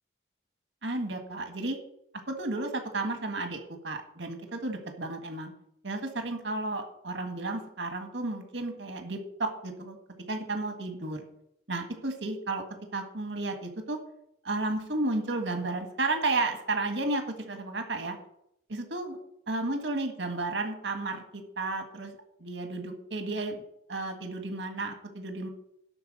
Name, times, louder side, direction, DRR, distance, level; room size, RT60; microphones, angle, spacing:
voice 1, 0.8-1.8 2.3-5.5 5.8-10.0 10.3-11.2 11.7-12.6 12.9-14.0 14.4-18.2 18.7-19.2 19.5-22.1 22.4-23.6 23.9-25.5, right 2 dB, 80° right, 5 dB, 1.7 m, -32 dB
12.0 x 4.5 x 7.9 m, 0.74 s
head